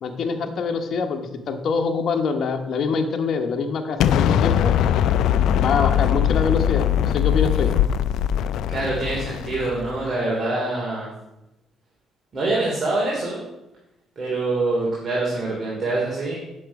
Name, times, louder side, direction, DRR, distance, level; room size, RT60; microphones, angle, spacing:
voice 1, 0.0-4.7 5.6-7.7, left 5 dB, 60° left, 4 dB, 1.0 m, -25 dB
Explosion, 4.0-10.0, left 10 dB, 80° left, 0.4 m, -21 dB
voice 2, 8.7-11.1 12.3-13.4 14.2-16.4, right 2 dB, 45° right, -5 dB, 2.8 m, -25 dB
8.8 x 6.9 x 4.8 m, 0.94 s
cardioid pair, 90°, 0 cm